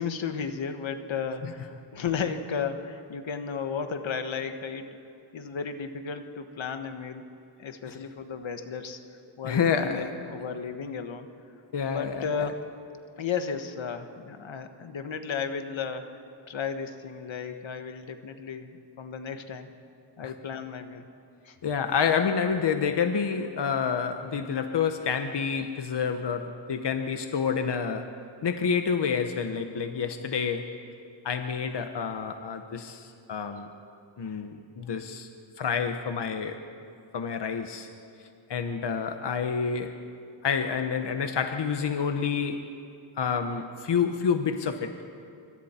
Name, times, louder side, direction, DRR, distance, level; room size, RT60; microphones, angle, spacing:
voice 1, 0.0-5.0 5.3-7.3 7.6-9.0 9.4-11.3 11.8-12.7 13.2-16.1 16.5-19.7 20.2-21.1 21.4-21.6, left 6 dB, 80° left, 7 dB, 1.4 m, -34 dB
voice 2, 9.4-10.1 11.7-12.5 20.2-20.3 21.6-28.1 28.4-30.7 31.2-33.7 34.2-35.3 35.6-36.6 37.1-37.9 38.5-39.9 40.4-42.7 43.2-44.9, left 6 dB, 60° left, 7 dB, 1.1 m, -28 dB
26.0 x 24.5 x 4.4 m, 2.5 s
wide cardioid pair, 120°, 46 cm